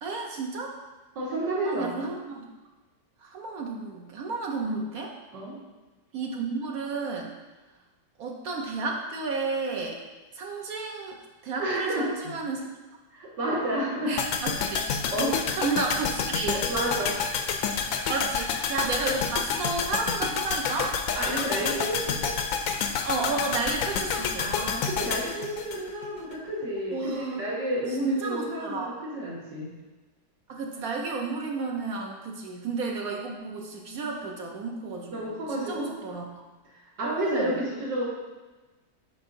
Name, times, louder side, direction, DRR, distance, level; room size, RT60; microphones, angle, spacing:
voice 1, 0.0-0.7 1.6-2.5 3.2-5.1 6.1-7.3 8.2-10.0 10.3-11.2 11.4-12.7 14.1-14.8 15.6-16.6 18.1-20.9 23.0-24.6 26.9-27.4 27.9-28.9 30.5-36.3 37.0-37.6, right 4 dB, 60° right, 0 dB, 1.2 m, -32 dB
voice 2, 1.2-1.9 5.3-5.6 11.6-12.1 13.1-14.2 15.1-15.4 16.5-17.2 21.2-22.3 24.4-28.8 29.1-29.7 35.1-35.9 37.0-38.0, right 1 dB, 80° right, -6 dB, 2.5 m, -30 dB
sound 1, 14.2-26.4 26.6-26.7, left 6 dB, 75° left, 0.8 m, -29 dB
8.4 x 5.9 x 2.7 m, 1.2 s
omnidirectional pair, 1.9 m